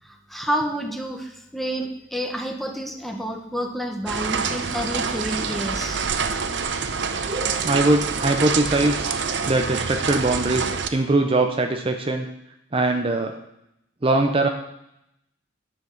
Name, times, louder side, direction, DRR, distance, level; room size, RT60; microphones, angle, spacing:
voice 1, 0.0-6.0, equal, ahead, 3 dB, 1.1 m, -29 dB
sound 1, 4.1-10.9, right 5 dB, 65° right, 0.8 m, -26 dB
voice 2, 7.3-9.1 9.5-12.3 12.7-13.4 14.0-14.5, right 2 dB, 30° right, 5 dB, 0.6 m, -22 dB
10.5 x 5.9 x 7.3 m, 0.82 s
head